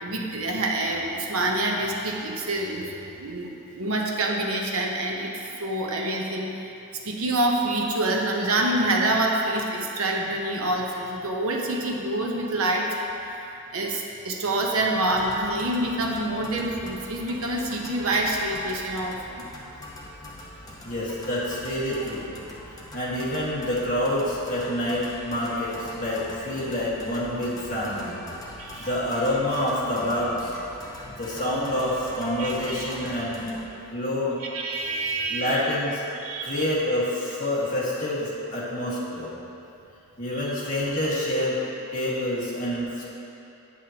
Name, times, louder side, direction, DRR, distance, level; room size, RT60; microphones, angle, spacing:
voice 1, 0.0-2.9 3.2-5.3 5.6-6.5 7.0-12.9 13.7-19.4 28.6-28.9 31.0-31.1 32.4-32.5 34.4-35.6 36.2-36.6 40.3-40.5, right 1 dB, 75° right, 0 dB, 0.9 m, -26 dB
sound 1, 15.1-33.7, left 1 dB, 15° left, 0.9 m, -42 dB
voice 2, 20.8-22.3 22.9-28.2 28.6-30.5 31.2-33.5 33.9-34.4 35.3-36.0 36.4-39.3 40.2-41.6 41.9-43.0, left 1 dB, 35° left, -7 dB, 1.7 m, -27 dB
9.0 x 8.4 x 2.9 m, 2.8 s
head